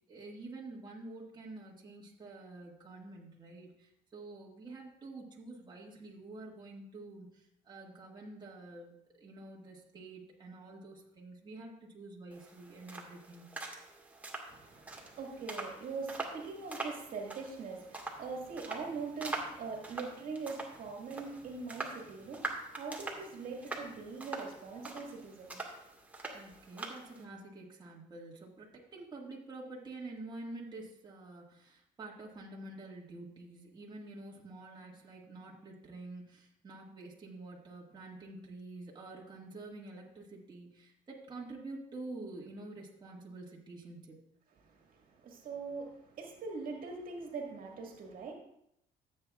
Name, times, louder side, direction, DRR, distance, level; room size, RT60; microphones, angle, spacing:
voice 1, 0.1-13.5 26.3-44.2, right 2 dB, 25° right, -3 dB, 1.8 m, -48 dB
sound 1, 12.3-27.2, right 2 dB, 10° right, 1.7 m, -44 dB
voice 2, 14.5-25.6 44.6-48.3, right 4 dB, 55° right, 1 dB, 1.9 m, -42 dB
14.5 x 8.0 x 2.4 m, 0.78 s
cardioid pair, 110°, 17 cm